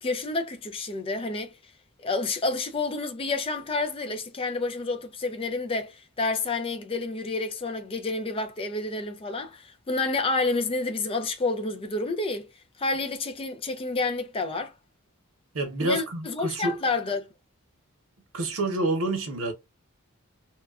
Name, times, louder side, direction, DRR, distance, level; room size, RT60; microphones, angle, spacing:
voice 1, 0.0-1.5 2.0-12.5 12.8-14.7 15.8-17.3, left 3 dB, 25° left, 0.4 m, -29 dB
voice 2, 15.5-16.8 18.3-19.5, right 2 dB, 80° right, 0.8 m, -28 dB
3.0 x 2.3 x 2.3 m
head